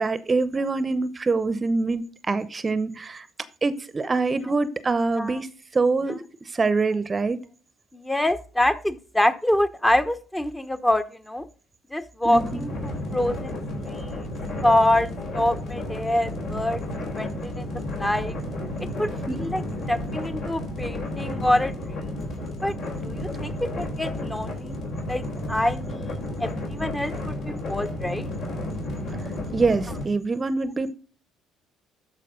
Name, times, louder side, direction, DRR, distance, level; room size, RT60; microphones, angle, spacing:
voice 1, 0.0-3.3 3.6-5.5 5.7-6.2 6.5-7.4 12.2-12.6 19.3-19.4 29.5-30.9, right 3 dB, 30° right, 15 dB, 0.8 m, -24 dB
voice 2, 7.9-11.4 11.9-13.6 13.8-14.3 14.6-16.8 17.2-17.7 18.0-18.3 19.0-19.6 19.9-21.8 22.0-22.1 22.6-22.7 23.0-24.8 25.1-28.3, left 1 dB, 10° left, 11 dB, 1.0 m, -25 dB
sound 1, 12.3-30.0, left 1 dB, 60° left, 4.0 m, -32 dB
13.0 x 4.8 x 3.7 m, 0.39 s
hypercardioid pair, 60°, 0 cm